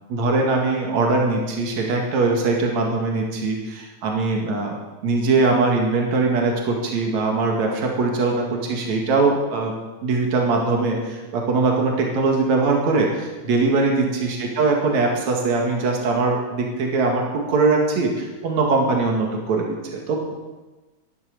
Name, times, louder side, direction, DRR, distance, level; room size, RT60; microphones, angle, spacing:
voice 1, 0.1-4.8 5.0-9.7 10.0-17.2 17.5-19.7 19.9-20.3, right 3 dB, 70° right, 0 dB, 3.3 m, -21 dB
13.5 x 11.0 x 6.7 m, 1.2 s
omnidirectional pair, 3.4 m